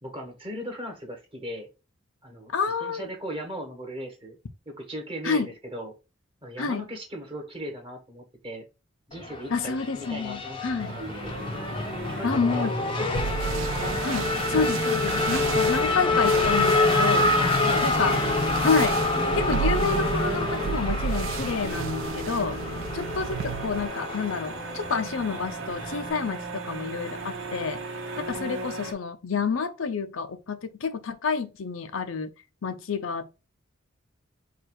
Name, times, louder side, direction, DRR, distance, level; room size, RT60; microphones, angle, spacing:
voice 1, 0.0-1.7 2.2-2.5 2.8-4.4 4.6-5.9 6.4-8.6 9.1-10.6 10.9-11.4 12.1-12.7 13.0-13.8 15.3-15.4 17.4-18.4 22.3-22.8 28.1-28.9, equal, 25° right, 1.3 m, -38 dB
voice 2, 2.5-3.1 5.2-5.5 6.6-6.9 9.5-10.9 12.2-12.7 14.0-17.3 17.8-18.1 18.6-19.0 19.3-22.6 22.9-27.8 28.2-32.3 32.6-33.3, left 5 dB, 75° left, 0.6 m, -29 dB
Race car auto racing / Accelerating revving vroom, 9.1-26.1, left 2 dB, 25° left, 0.6 m, -27 dB
sound 1, 10.8-28.9, right 2 dB, 80° right, 1.1 m, -36 dB
sound 2, 13.1-23.8, right 7 dB, 65° right, 0.3 m, -33 dB
4.6 x 2.4 x 4.6 m
head